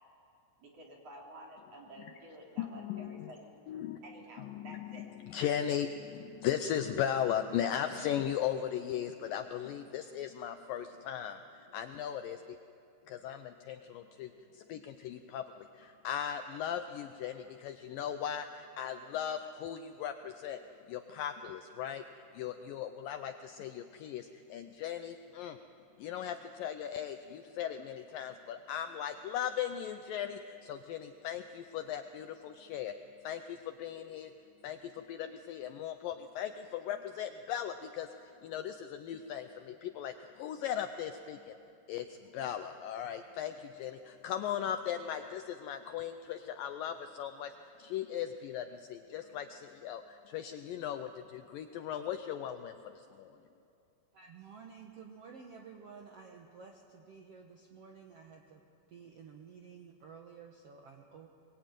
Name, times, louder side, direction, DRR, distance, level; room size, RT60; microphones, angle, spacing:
voice 1, 0.6-3.5 4.0-5.1, right 1 dB, 40° right, -1 dB, 3.6 m, -51 dB
voice 2, 2.6-3.3 3.7-4.0 4.4-12.6 13.1-20.6 20.9-22.0 22.3-25.6 26.0-33.0 33.2-34.3 34.6-41.6 41.9-53.4, left 9 dB, 80° left, 8 dB, 2.0 m, -38 dB
voice 3, 54.1-58.6 58.9-61.3, right 6 dB, 75° right, 2 dB, 1.4 m, -52 dB
23.0 x 21.5 x 9.1 m, 2.7 s
omnidirectional pair, 4.7 m